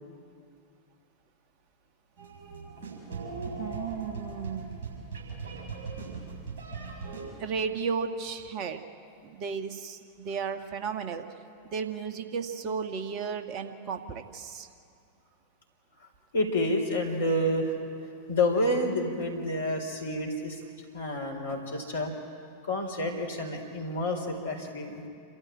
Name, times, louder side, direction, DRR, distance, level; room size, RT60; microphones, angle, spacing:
sound 1, 2.2-7.2, right 4 dB, 55° right, 7.8 m, -39 dB
voice 1, 3.6-4.7 7.4-8.8 9.2-11.2 11.6-14.7, right 6 dB, 40° right, 7 dB, 1.5 m, -34 dB
voice 2, 16.3-20.6 20.9-22.1 22.6-25.0, left 1 dB, 70° left, 2 dB, 4.2 m, -29 dB
28.0 x 13.5 x 9.0 m, 2.4 s
figure-of-eight pair, 90°, 0 cm